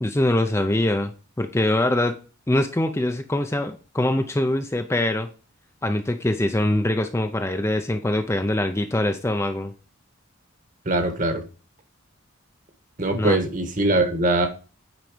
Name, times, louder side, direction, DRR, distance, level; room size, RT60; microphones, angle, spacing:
voice 1, 0.0-1.1 1.4-2.1 2.5-5.3 5.8-9.7 13.1-13.4, left 1 dB, 15° left, 7 dB, 0.5 m, -23 dB
voice 2, 10.8-11.4 13.0-14.5, right 2 dB, 40° right, 7 dB, 1.3 m, -22 dB
9.2 x 4.1 x 5.0 m, 0.35 s
head